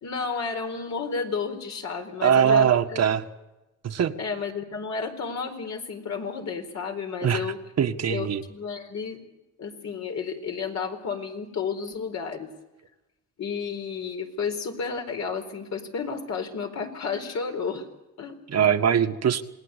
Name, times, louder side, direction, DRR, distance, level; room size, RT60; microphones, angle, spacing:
voice 1, 0.0-3.0 4.2-7.6 8.1-9.2 9.6-12.5 13.4-17.9 18.2-18.8, left 5 dB, 60° left, 4 dB, 4.5 m, -32 dB
voice 2, 2.2-3.2 3.8-4.1 7.2-7.4 7.8-8.4 18.5-19.4, right 8 dB, 55° right, 7 dB, 1.6 m, -21 dB
27.5 x 19.5 x 8.3 m, 1.0 s
cardioid pair, 90°, 30 cm